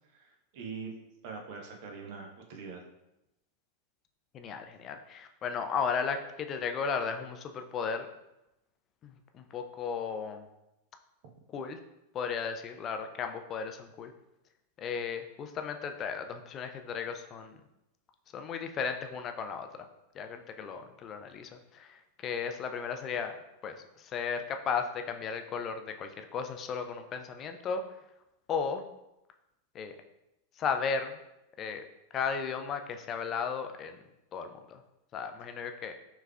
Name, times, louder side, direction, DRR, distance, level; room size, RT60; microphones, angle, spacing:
voice 1, 0.1-0.9 1.2-2.8, right 5 dB, 45° right, 2 dB, 0.6 m, -43 dB
voice 2, 4.3-8.1 9.0-10.4 11.5-11.8 12.1-14.1 14.8-17.5 18.3-19.9 20.1-23.3 23.6-27.8 28.5-28.8 29.7-30.0 30.6-31.2 31.6-31.8 32.1-34.0 34.3-34.8 35.1-35.9, left 6 dB, 30° left, 6 dB, 0.4 m, -35 dB
4.7 x 3.2 x 2.2 m, 0.91 s
figure-of-eight pair, 90°, 0 cm